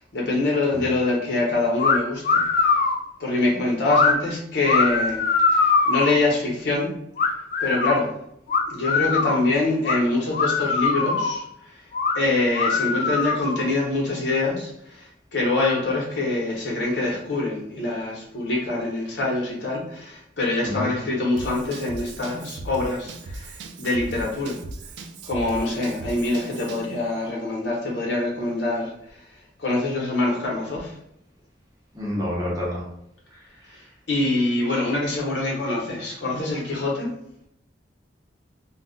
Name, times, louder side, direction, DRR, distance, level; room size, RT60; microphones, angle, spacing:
voice 1, 0.1-2.7 3.2-5.2 5.5-6.9 7.6-8.1 8.7-11.4 12.1-24.6 25.2-28.9 29.6-30.9 34.1-37.1, left 2 dB, 80° left, -2 dB, 0.9 m, -25 dB
sound 1, 1.8-2.0 2.2-3.0 3.9-4.1 4.6-6.2 7.2-8.0 8.5-9.4 9.8-10.0 10.3-11.4 11.9-12.2 12.5-13.7, left 4 dB, 50° left, 0.3 m, -21 dB
voice 2, 20.6-20.9 31.9-32.8, left 1 dB, 20° right, -4 dB, 0.8 m, -28 dB
Drum kit / Drum, 21.4-26.9, right 2 dB, 75° right, 0.3 m, -38 dB
2.3 x 2.1 x 3.7 m, 0.75 s
head